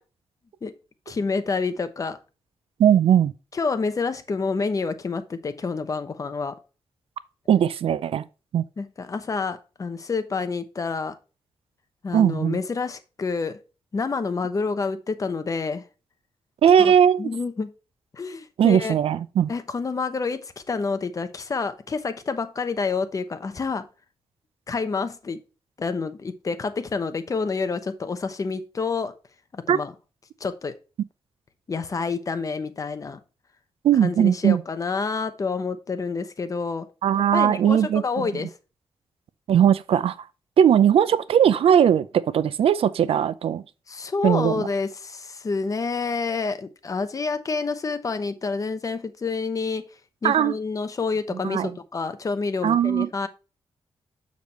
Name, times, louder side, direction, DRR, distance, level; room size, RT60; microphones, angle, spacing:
voice 1, 1.1-2.2 3.5-6.5 8.8-11.1 12.0-13.6 13.9-15.8 16.8-17.7 18.1-19.0 19.5-20.4 20.7-23.8 24.7-25.4 25.8-29.1 29.5-29.9 30.4-30.7 31.7-33.2 34.0-36.9 37.3-38.5 43.9-49.8 50.2-53.3, left 4 dB, 35° left, 0.9 m, -28 dB
voice 2, 2.8-3.3 7.5-8.2 8.5-8.6 12.1-12.6 16.6-17.3 18.6-19.5 29.7-29.8 33.8-34.6 37.0-38.0 39.5-40.1 40.6-43.6 44.2-44.7 50.2-50.5 51.3-51.7 52.6-53.1, right 9 dB, 75° right, 0.5 m, -19 dB
7.1 x 6.5 x 3.1 m
wide cardioid pair, 130°, 10 cm